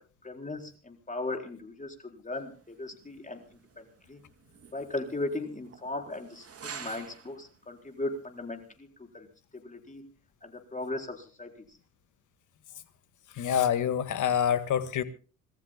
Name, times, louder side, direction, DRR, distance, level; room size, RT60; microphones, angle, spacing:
voice 1, 0.2-3.4 3.8-4.2 4.7-8.9 9.1-9.3 9.5-10.1 10.4-11.5, left 2 dB, 15° left, 3 dB, 4.4 m, -37 dB
sound 1, 2.3-7.6 8.0-8.1 8.5-8.7, right 6 dB, 30° right, 2.9 m, -48 dB
voice 2, 13.3-15.0, left 9 dB, 45° left, 14 dB, 1.7 m, -26 dB
26.0 x 19.0 x 2.2 m, 0.37 s
figure-of-eight pair, 50°, 43 cm